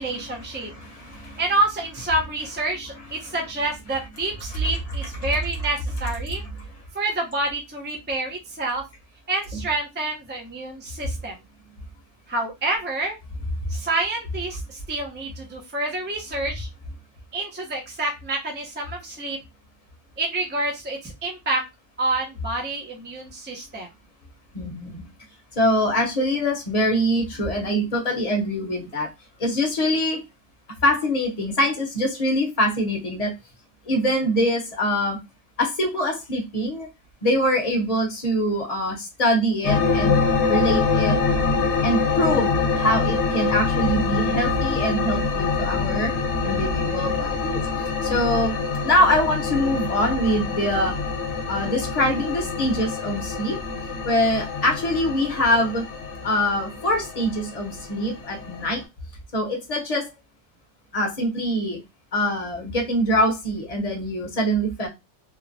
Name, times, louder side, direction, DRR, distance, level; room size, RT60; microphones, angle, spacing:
voice 1, 0.0-0.7 1.4-6.4 6.9-8.8 9.3-11.3 12.3-13.2 13.7-16.7 17.3-19.4 20.2-21.6 22.0-23.9, right 2 dB, 15° right, 1 dB, 0.4 m, -28 dB
voice 2, 0.8-1.4 5.2-5.3 24.5-25.0 25.6-29.1 29.4-30.2 30.8-33.3 33.9-35.2 35.6-36.9 37.2-40.2 40.5-41.2 41.8-46.1 46.4-47.6 48.0-48.6 48.8-51.0 51.5-53.6 54.1-55.8 56.2-58.8 59.3-60.1 60.9-61.8 62.1-64.9, equal, 35° left, 1 dB, 0.8 m, -24 dB
sound 1, 39.6-58.8, left 4 dB, 75° left, 1.0 m, -25 dB
2.9 x 2.1 x 2.5 m, 0.22 s
omnidirectional pair, 1.2 m